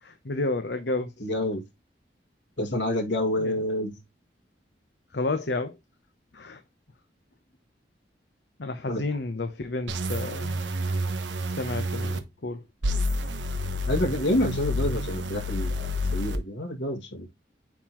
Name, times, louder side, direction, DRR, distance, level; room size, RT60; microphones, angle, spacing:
voice 1, 0.2-1.2 3.4-3.6 5.1-5.8 6.3-6.6 8.6-10.6 11.4-12.6, left 2 dB, 70° left, 0.8 m, -31 dB
voice 2, 1.2-1.6 2.6-4.0 8.9-9.0 13.9-17.3, left 1 dB, 85° left, 2.1 m, -28 dB
sound 1, 9.9-12.2 12.8-16.4, left 1 dB, 90° right, 1.1 m, -29 dB
9.2 x 3.8 x 3.0 m
head